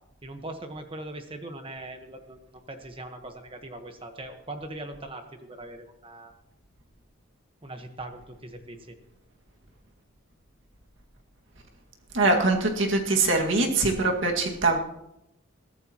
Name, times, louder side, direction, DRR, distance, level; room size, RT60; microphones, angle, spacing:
voice 1, 0.2-6.3 7.6-9.0, right 2 dB, 25° right, 6 dB, 1.3 m, -41 dB
voice 2, 12.1-14.8, right 3 dB, 65° right, 1 dB, 2.0 m, -23 dB
21.5 x 14.0 x 3.0 m, 0.86 s
head